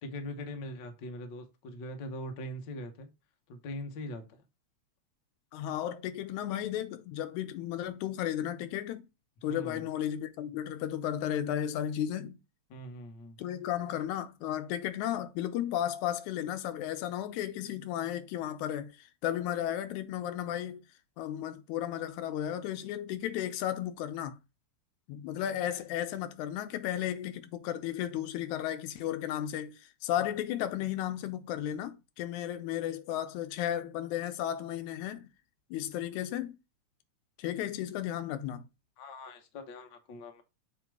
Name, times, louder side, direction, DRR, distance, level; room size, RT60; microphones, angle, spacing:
voice 1, 0.0-3.1 3.5-4.4 9.5-9.8 12.7-13.4 39.0-40.4, left 1 dB, 60° left, 1.3 m, -42 dB
voice 2, 5.5-9.1 9.4-12.4 13.4-20.8 21.2-24.4 25.1-35.3 35.7-36.6 37.4-38.7, left 11 dB, 85° left, 2.1 m, -34 dB
7.5 x 3.0 x 4.6 m
omnidirectional pair, 3.4 m